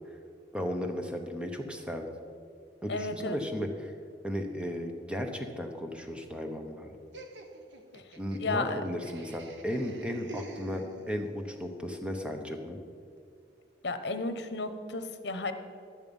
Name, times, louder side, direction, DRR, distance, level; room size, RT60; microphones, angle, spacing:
voice 1, 0.5-2.1 2.8-3.9 4.2-7.0 8.2-12.8, equal, 5° right, 4 dB, 0.9 m, -35 dB
voice 2, 2.9-3.4 7.9-8.0 8.4-8.8 13.8-15.5, left 3 dB, 70° left, 9 dB, 0.9 m, -33 dB
Laughter, 7.1-11.4, right 2 dB, 85° right, 1.1 m, -48 dB
11.5 x 9.0 x 5.3 m, 2.4 s
head